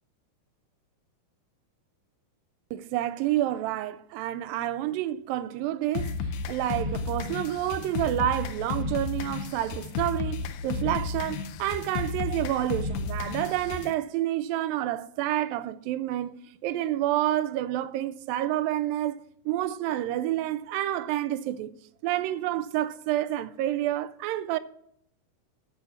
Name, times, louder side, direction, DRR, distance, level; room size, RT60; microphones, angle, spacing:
voice 1, 2.7-6.1 6.5-16.3 16.6-19.1 19.5-21.7 22.0-24.6, right 13 dB, 85° right, 2.3 m, -29 dB
sound 1, 6.0-13.9, left 4 dB, 85° left, 1.7 m, -33 dB
8.9 x 6.4 x 6.9 m
omnidirectional pair, 4.0 m